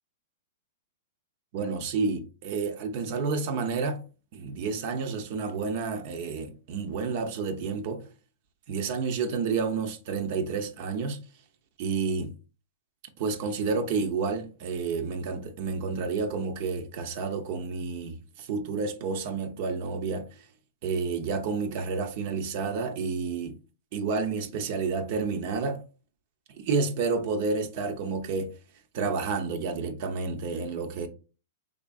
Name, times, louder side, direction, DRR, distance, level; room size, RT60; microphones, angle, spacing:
voice 1, 1.5-4.0 4.3-8.0 8.7-11.2 11.8-12.3 13.2-20.5 20.8-23.5 23.9-25.8 26.6-28.5 28.9-31.1, right 4 dB, 50° right, 0.6 m, -30 dB
3.6 x 3.3 x 2.3 m
hypercardioid pair, 135°, 0 cm